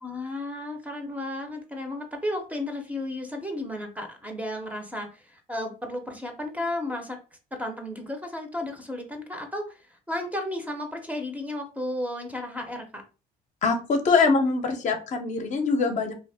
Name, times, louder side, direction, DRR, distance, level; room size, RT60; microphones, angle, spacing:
voice 1, 0.0-7.2 7.5-9.8 10.1-13.0, left 1 dB, 10° right, 4 dB, 0.6 m, -33 dB
voice 2, 13.6-16.1, left 4 dB, 45° left, 5 dB, 0.6 m, -23 dB
2.7 x 2.0 x 3.3 m, 0.34 s
cardioid pair, 110°, 17 cm